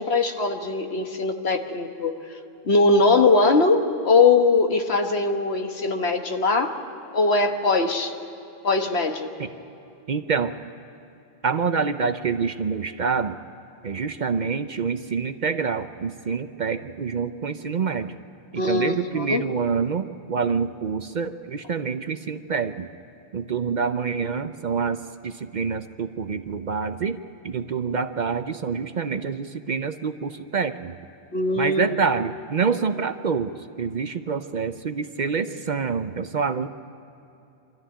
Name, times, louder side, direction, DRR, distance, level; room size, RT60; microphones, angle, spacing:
voice 1, 0.0-2.1 2.6-6.7 7.1-8.1 8.6-9.3 18.6-19.4 31.3-31.9, left 3 dB, 75° left, 5 dB, 1.6 m, -21 dB
voice 2, 10.1-10.5 11.4-13.4 13.8-18.1 18.5-22.9 23.3-27.2 27.4-31.0 31.6-33.5 33.8-36.7, right 5 dB, 50° right, 10 dB, 0.7 m, -26 dB
25.0 x 13.5 x 9.9 m, 2.8 s
omnidirectional pair, 1.1 m